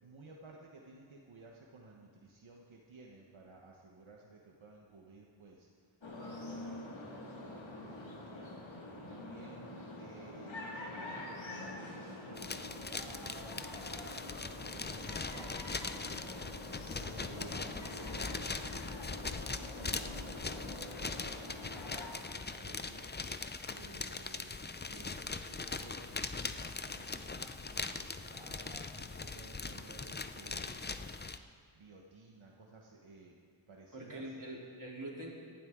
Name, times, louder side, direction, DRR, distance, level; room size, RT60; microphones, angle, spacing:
voice 1, 0.0-5.7 6.1-8.5 9.1-13.9 14.2-16.5 17.0-17.3 17.9-18.7 19.7-23.1 23.7-24.6 24.9-30.9 31.7-33.4 33.7-34.2, right 3 dB, 80° right, -1 dB, 1.3 m, -55 dB
sound 1, 6.0-22.1, left 2 dB, 70° left, 2.4 m, -46 dB
sound 2, 12.4-31.4, left 4 dB, 20° left, 0.5 m, -41 dB
voice 2, 17.2-17.6 33.9-35.3, right 1 dB, 40° right, -4 dB, 3.6 m, -44 dB
18.0 x 12.0 x 3.8 m, 2.3 s
wide cardioid pair, 50°, 48 cm